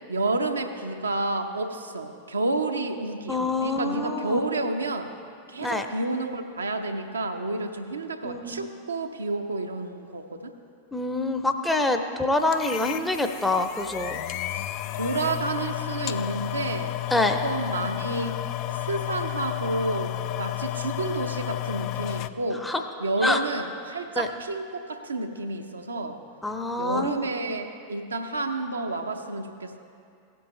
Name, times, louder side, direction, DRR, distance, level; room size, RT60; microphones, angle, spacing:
voice 1, 0.1-5.1 5.5-10.5 14.5-14.6 14.9-16.9 17.4-18.4 18.7-22.7 23.0-26.2 26.8-29.8, right 2 dB, 75° right, 5 dB, 0.7 m, -30 dB
voice 2, 3.3-4.4 5.6-5.9 8.2-8.7 10.9-14.2 17.1-17.4 22.6-22.8 23.2-23.4 24.2-24.3 26.4-27.2, left 2 dB, 5° left, 6 dB, 0.6 m, -26 dB
sound 1, 12.5-22.3, left 14 dB, 40° left, 0.3 m, -32 dB
17.0 x 7.9 x 3.2 m, 2.4 s
figure-of-eight pair, 90°, 0 cm